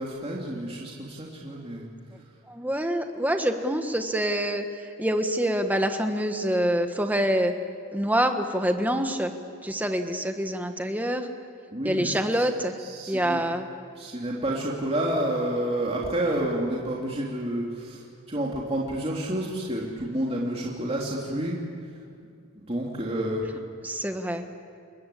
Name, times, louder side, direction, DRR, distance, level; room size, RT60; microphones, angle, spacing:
voice 1, 0.0-1.9 11.7-12.2 12.9-13.4 14.0-18.0 18.3-21.6 22.5-23.5, right 1 dB, 25° right, -3 dB, 2.9 m, -29 dB
voice 2, 2.5-4.6 5.0-7.5 7.9-9.3 9.6-11.3 11.8-12.7 13.1-13.7 23.8-24.4, equal, 5° right, 6 dB, 1.5 m, -26 dB
30.0 x 21.5 x 8.5 m, 2.3 s
head